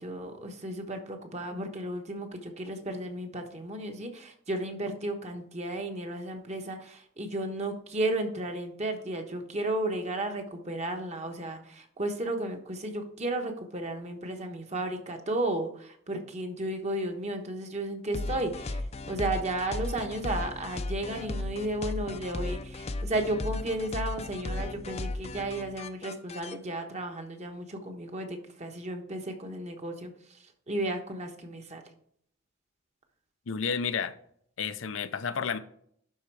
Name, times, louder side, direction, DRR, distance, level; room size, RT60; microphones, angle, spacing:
voice 1, 0.0-31.8, right 1 dB, 35° right, 1.2 m, -34 dB
sound 1, 18.1-26.5, left 2 dB, 35° left, 0.5 m, -35 dB
voice 2, 33.5-34.1 34.6-35.6, left 6 dB, 80° left, 0.6 m, -31 dB
11.5 x 4.4 x 4.7 m
head